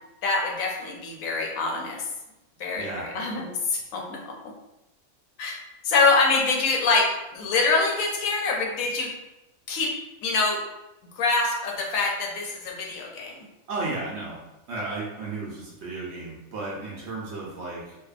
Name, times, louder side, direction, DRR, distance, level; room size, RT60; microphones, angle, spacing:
voice 1, 0.2-2.0 2.6-4.2 5.4-5.6 5.8-9.1 9.7-9.9 10.2-10.6 11.2-13.4, left 3 dB, 75° left, 0 dB, 1.0 m, -25 dB
voice 2, 2.7-3.1 13.7-14.4 14.7-18.0, right 3 dB, 65° right, -4 dB, 0.7 m, -33 dB
2.7 x 2.1 x 2.3 m, 0.97 s
omnidirectional pair, 1.5 m